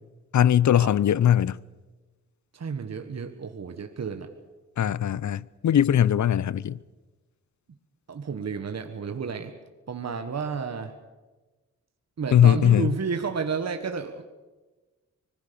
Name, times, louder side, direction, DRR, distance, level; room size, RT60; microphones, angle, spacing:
voice 1, 0.3-1.6 4.8-6.8 12.3-12.9, left 10 dB, 70° left, 0.6 m, -20 dB
voice 2, 2.5-4.3 8.1-9.5 9.9-10.9 12.2-14.2, right 5 dB, 60° right, 1.6 m, -31 dB
25.5 x 19.5 x 7.0 m
cardioid pair, 80°, 30 cm